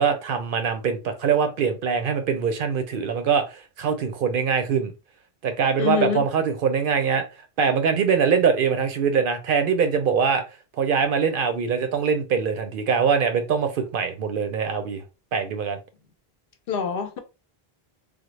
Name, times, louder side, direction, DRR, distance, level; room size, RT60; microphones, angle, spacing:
voice 1, 0.0-4.9 5.4-7.2 7.6-10.4 10.8-15.0 15.3-15.8, right 6 dB, 65° right, 0.7 m, -23 dB
voice 2, 5.8-6.3 16.7-17.2, left 7 dB, 65° left, 0.7 m, -25 dB
3.5 x 2.0 x 3.1 m
omnidirectional pair, 1.0 m